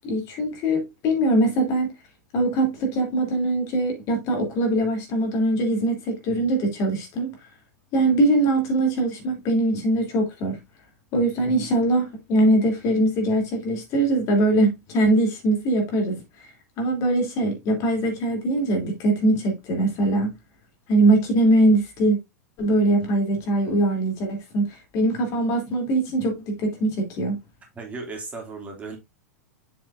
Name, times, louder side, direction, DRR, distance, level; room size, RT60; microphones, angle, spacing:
voice 1, 0.0-1.9 2.3-7.4 7.9-10.6 11.1-16.5 16.8-20.3 20.9-22.2 22.6-27.4, right 1 dB, 40° left, 3.0 m, -22 dB
voice 2, 27.8-29.0, right 3 dB, 15° right, 2.5 m, -35 dB
7.4 x 6.7 x 2.6 m
figure-of-eight pair, 90°, 8 cm